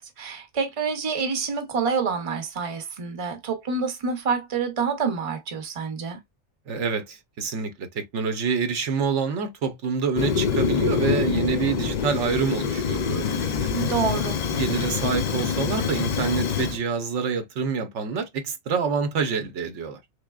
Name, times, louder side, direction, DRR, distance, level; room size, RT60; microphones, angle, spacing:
voice 1, 0.0-6.2 13.7-14.4, right 5 dB, 30° right, 0.8 m, -27 dB
voice 2, 6.7-13.7 14.6-20.0, right 5 dB, 85° right, 1.1 m, -27 dB
Fire, 10.1-16.8, left 6 dB, 55° left, 0.5 m, -25 dB
3.5 x 3.3 x 2.3 m
omnidirectional pair, 1.2 m